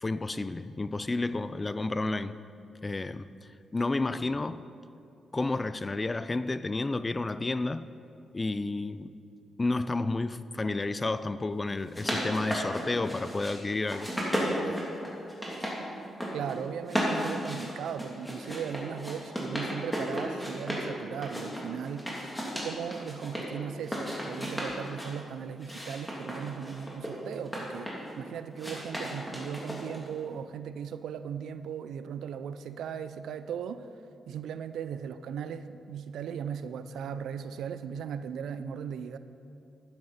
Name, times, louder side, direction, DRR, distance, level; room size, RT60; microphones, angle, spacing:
voice 1, 0.0-2.4 2.8-3.3 3.7-4.6 5.3-7.9 8.3-9.1 9.6-14.1, left 2 dB, 25° left, 0.4 m, -31 dB
sound 1, 11.7-13.5 13.9-15.8 16.0-16.6 16.9-20.9 21.2-23.4 23.8-25.1 25.6-28.1 28.6-30.1, equal, 5° left, 2.9 m, -34 dB
voice 2, 16.3-22.1 22.6-33.9 34.3-39.2, right 7 dB, 85° right, 0.4 m, -37 dB
12.5 x 9.5 x 4.3 m
cardioid pair, 70°, 0 cm